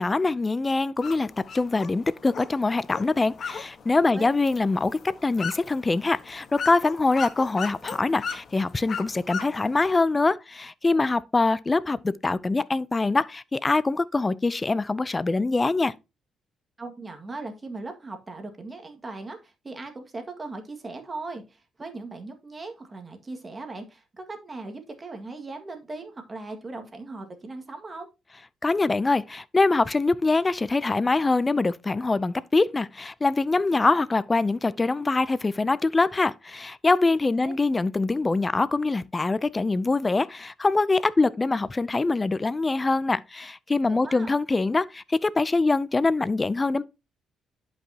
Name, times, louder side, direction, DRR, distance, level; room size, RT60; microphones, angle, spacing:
voice 1, 0.0-15.9 28.6-46.8, left 3 dB, 25° left, 0.5 m, -24 dB
sound 1, 1.0-9.9, left 6 dB, 50° left, 1.2 m, -38 dB
voice 2, 16.8-28.1 37.4-37.5 43.9-44.3, right 3 dB, 25° right, 1.9 m, -38 dB
11.0 x 5.5 x 2.8 m
cardioid pair, 90°, 0 cm